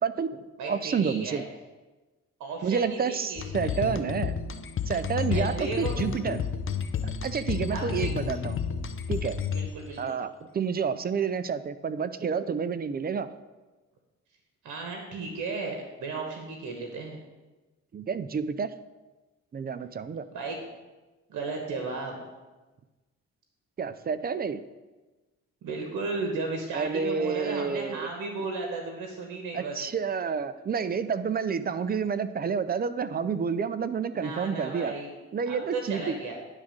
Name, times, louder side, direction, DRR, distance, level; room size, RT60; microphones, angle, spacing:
voice 1, 0.0-1.4 2.6-4.4 4.9-6.5 7.0-8.6 9.1-9.4 10.0-13.3 17.9-18.7 19.5-20.3 23.8-24.6 26.7-28.1 29.5-34.9 35.3-36.2, right 6 dB, 30° right, 13 dB, 0.5 m, -29 dB
voice 2, 0.6-1.4 2.4-3.7 5.3-6.0 7.6-8.1 9.5-10.2 14.6-17.2 20.3-20.6 21.3-22.2 25.6-29.8 34.1-35.1 35.5-36.4, right 3 dB, 85° right, 2 dB, 1.2 m, -35 dB
sound 1, 3.4-10.0, left 6 dB, 45° left, 0.7 m, -31 dB
10.0 x 3.6 x 6.4 m, 1.2 s
cardioid pair, 80°, 30 cm